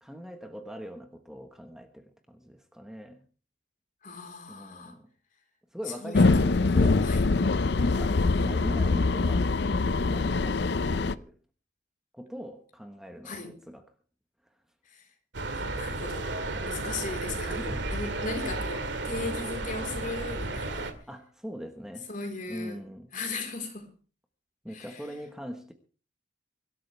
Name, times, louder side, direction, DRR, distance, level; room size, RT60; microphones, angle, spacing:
voice 1, 0.0-3.2 4.5-5.1 5.7-7.1 7.8-9.5 10.1-10.6 10.9-11.3 12.1-13.4 13.7-13.8 16.5-16.7 17.4-17.9 21.1-22.1 22.5-23.1 24.6-25.7, equal, 5° right, 1.3 m, -41 dB
voice 2, 4.0-5.0 5.9-6.4 7.0-7.3 13.2-13.5 14.9-15.0 15.5-16.3 16.6-20.9 22.1-22.8 23.1-23.9 24.7-25.0, left 3 dB, 45° left, 4.1 m, -37 dB
sound 1, 6.1-11.1, left 3 dB, 65° left, 0.6 m, -24 dB
sound 2, 15.3-20.9, right 2 dB, 75° right, 2.1 m, -33 dB
24.0 x 12.5 x 3.4 m
head